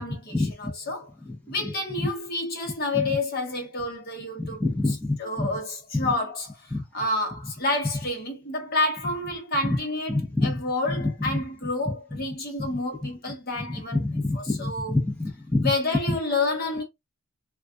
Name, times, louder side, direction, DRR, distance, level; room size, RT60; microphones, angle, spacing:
voice 1, 0.0-1.1 1.5-4.6 5.2-14.0 14.3-14.9 15.6-16.8, left 2 dB, 45° left, 1.0 m, -29 dB
voice 2, 4.4-5.5 5.9-6.1 6.7-6.8 9.6-9.8 10.1-10.6 11.0-11.4 12.1-12.2 13.9-15.7 16.1-16.2, left 2 dB, 10° left, 0.8 m, -26 dB
4.0 x 2.3 x 2.3 m
head